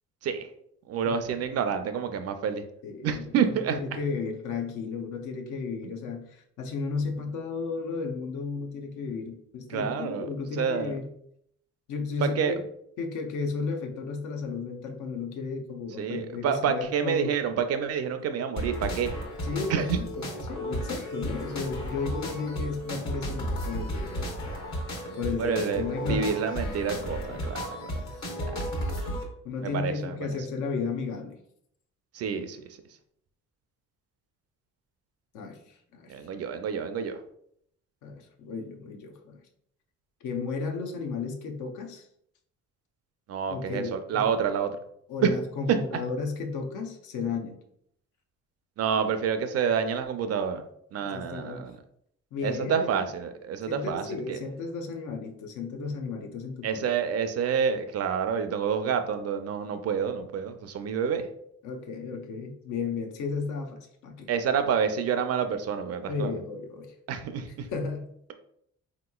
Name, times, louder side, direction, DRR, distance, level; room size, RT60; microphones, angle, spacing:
voice 1, 0.9-2.6 3.0-3.8 9.7-10.3 10.6-10.9 12.2-12.6 16.0-19.1 19.7-19.8 25.4-27.7 29.6-30.1 32.1-32.6 36.1-37.2 43.3-44.7 45.2-45.3 48.8-50.6 50.9-51.7 52.4-54.4 56.6-61.3 64.3-66.3 67.1-67.7, right 7 dB, 55° right, 8 dB, 0.4 m, -28 dB
voice 2, 2.8-3.2 3.7-11.1 11.9-12.6 13.0-17.3 19.4-24.3 25.2-26.4 27.3-27.5 27.9-28.7 29.4-31.4 35.3-36.1 38.0-39.4 40.2-42.1 43.5-44.3 45.1-47.6 50.9-51.7 52.3-53.1 53.7-56.8 61.6-64.3 66.1-67.0 67.7-68.1, left 4 dB, 80° left, 4 dB, 0.6 m, -34 dB
sound 1, 18.6-29.2, equal, 65° left, 1.0 m, -33 dB
3.5 x 2.9 x 2.2 m, 0.71 s
cardioid pair, 90°, 30 cm